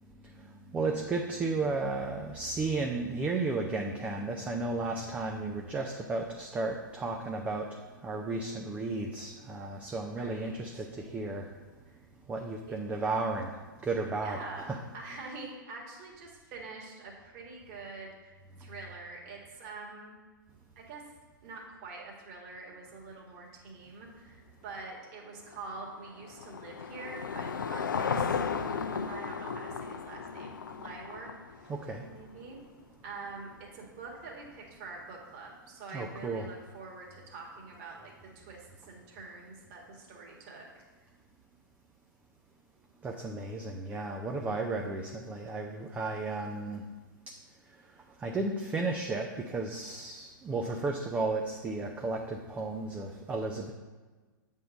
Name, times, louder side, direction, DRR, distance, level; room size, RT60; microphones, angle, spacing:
voice 1, 0.7-7.7 8.0-11.5 12.3-13.5 13.8-14.4 14.7-14.8 31.7-32.0 35.9-36.5 43.0-46.8 48.2-53.7, right 3 dB, 10° right, 2 dB, 0.5 m, -33 dB
voice 2, 10.1-10.9 12.7-12.8 14.2-20.1 20.8-21.0 21.4-28.3 28.9-31.7 32.1-32.6 33.0-40.8, right 3 dB, 40° right, -1 dB, 1.7 m, -45 dB
Car passing by / Engine, 25.5-31.9, left 6 dB, 65° left, 0.5 m, -35 dB
7.8 x 3.6 x 6.3 m, 1.3 s
figure-of-eight pair, 105°, 11 cm